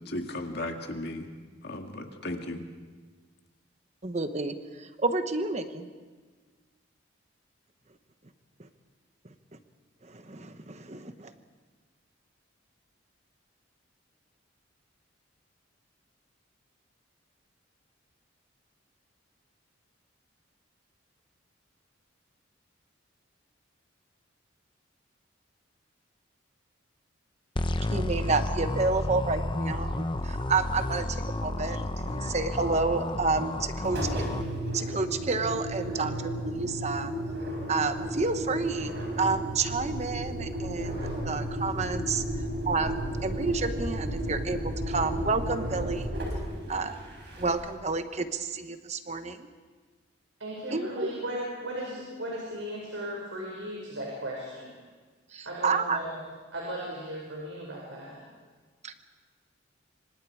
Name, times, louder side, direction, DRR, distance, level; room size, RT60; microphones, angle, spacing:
voice 1, 0.1-1.3 1.6-2.6, left 1 dB, 55° left, 4 dB, 2.0 m, -35 dB
voice 2, 4.0-5.9 10.0-11.3 27.9-34.2 34.7-37.1 37.7-42.2 42.6-46.1 46.7-47.0 47.4-49.5 50.7-51.1 55.3-56.0 58.8-58.9, right 3 dB, 35° right, 9 dB, 1.1 m, -30 dB
sound 1, 27.6-34.4, left 1 dB, 25° left, 0.7 m, -31 dB
Engine, 33.8-47.8, equal, 60° right, 6.1 m, -33 dB
voice 3, 50.4-54.7 55.4-56.2 56.5-58.2, right 1 dB, 85° right, -3 dB, 5.5 m, -36 dB
26.5 x 25.0 x 4.8 m, 1.4 s
head